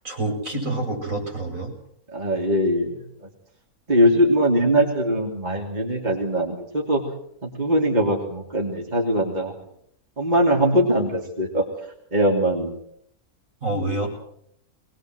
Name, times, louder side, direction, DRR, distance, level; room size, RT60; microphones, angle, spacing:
voice 1, 0.0-1.7 13.6-14.1, right 2 dB, 60° right, 0 dB, 8.1 m, -27 dB
voice 2, 2.1-3.0 3.9-7.0 7.4-9.6 10.2-11.6 12.1-12.7, equal, 30° right, -1 dB, 3.2 m, -21 dB
23.0 x 21.0 x 7.8 m, 0.71 s
omnidirectional pair, 1.6 m